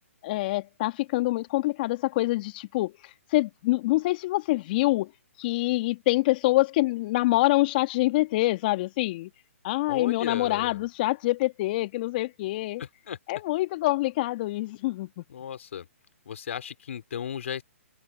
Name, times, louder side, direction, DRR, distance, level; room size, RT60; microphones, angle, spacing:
voice 1, 0.2-5.1 5.4-9.3 9.6-12.8 13.3-15.2, left 19 dB, 40° left, 2.0 m, -26 dB
voice 2, 9.9-10.8 12.8-13.2 15.3-15.9 16.3-17.6, left 8 dB, 60° left, 2.7 m, -35 dB
hypercardioid pair, 135°, 8 cm